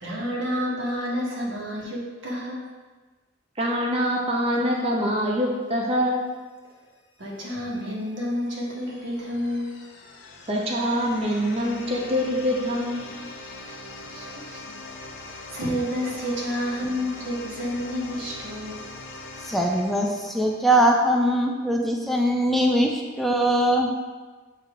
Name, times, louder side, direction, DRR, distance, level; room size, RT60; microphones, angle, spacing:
voice 1, 0.0-2.6 7.2-9.7 14.1-14.8 15.1-18.9, equal, 80° right, -4 dB, 1.6 m, -30 dB
voice 2, 3.6-6.2 10.5-13.1, equal, 35° right, -2 dB, 0.7 m, -24 dB
sound 1, 7.2-21.0, left 2 dB, 75° left, 0.9 m, -42 dB
voice 3, 19.4-23.9, right 1 dB, ahead, 0 dB, 0.4 m, -21 dB
7.3 x 2.7 x 5.1 m, 1.3 s
head